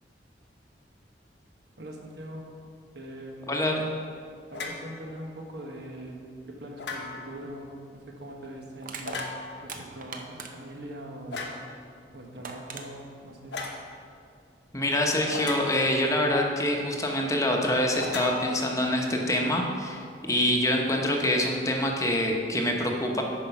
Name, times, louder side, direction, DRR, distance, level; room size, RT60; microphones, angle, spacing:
voice 1, 1.8-2.6 2.9-3.6 4.5-9.2 9.6-11.6 12.1-13.6, right 1 dB, 70° right, 1 dB, 1.3 m, -42 dB
voice 2, 3.5-3.9 14.7-23.2, left 1 dB, 20° left, 1 dB, 0.9 m, -25 dB
sound 1, 4.5-4.9 6.8-7.4 9.0-9.7 11.3-11.7 13.5-13.8 15.3-16.0 18.0-19.1, left 3 dB, 85° left, 1.2 m, -36 dB
Crushing, 7.6-7.7 8.8-10.8 12.0-12.1 12.4-12.9, right 4 dB, 50° right, 0.8 m, -40 dB
9.3 x 5.3 x 5.9 m, 2.2 s
head